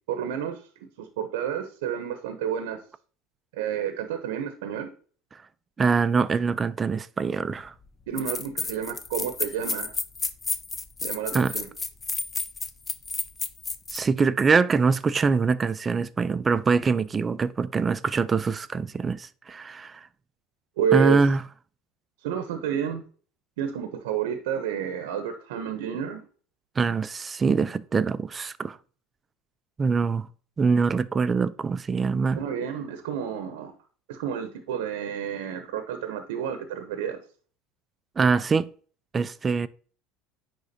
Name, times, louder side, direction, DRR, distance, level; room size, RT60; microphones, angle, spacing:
voice 1, 0.1-0.6 1.0-2.8 3.6-4.9 8.1-9.9 11.0-11.7 20.8-21.2 22.2-23.0 23.6-26.2 32.4-33.7 34.1-37.2, right 8 dB, 85° right, 0.7 m, -30 dB
voice 2, 5.8-7.7 11.3-11.5 13.9-20.1 20.9-21.4 26.8-28.8 29.8-30.3 30.6-32.4 38.2-38.7 39.1-39.7, right 5 dB, 25° right, 0.4 m, -24 dB
sound 1, 7.6-7.7 8.2-14.0, left 4 dB, 25° left, 0.6 m, -31 dB
9.6 x 3.6 x 2.7 m
supercardioid pair, 100°, 0 cm